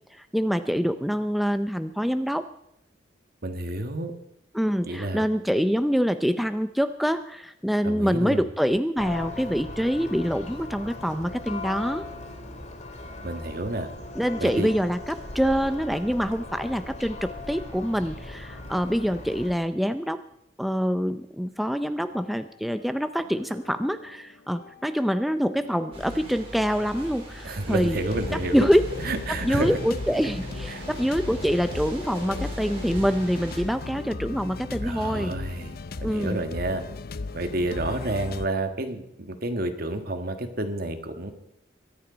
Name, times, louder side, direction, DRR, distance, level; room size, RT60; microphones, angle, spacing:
voice 1, 0.1-2.5 4.5-12.1 14.1-20.2 20.6-28.0 28.5-28.8 29.4-35.3 36.0-36.4, equal, ahead, 9 dB, 0.5 m, -25 dB
voice 2, 3.4-4.1 4.8-5.2 7.8-8.4 13.2-13.9 14.4-14.7 27.4-28.6 29.0-29.8 30.7-30.8 34.8-35.7 36.0-36.8 37.3-41.3, right 2 dB, 55° right, 7 dB, 1.6 m, -30 dB
Church bell, 9.0-19.5, left 2 dB, 40° left, 2.2 m, -38 dB
sound 1, 21.8-22.9 23.2-27.5 28.1-38.5, left 3 dB, 55° left, 0.6 m, -37 dB
sound 2, 25.9-33.6, equal, 35° right, 4.4 m, -39 dB
23.0 x 9.6 x 5.1 m, 0.80 s
head